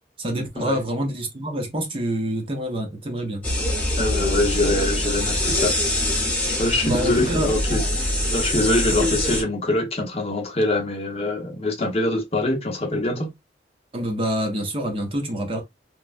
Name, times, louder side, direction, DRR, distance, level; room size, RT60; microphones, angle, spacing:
voice 1, 0.2-3.5 6.8-7.5 13.9-15.6, right 1 dB, 30° right, 0.6 m, -26 dB
sound 1, 3.4-9.4, left 1 dB, 10° left, 0.9 m, -24 dB
voice 2, 4.0-5.7 6.6-13.3, left 2 dB, 35° left, 0.7 m, -24 dB
3.2 x 2.1 x 2.4 m
head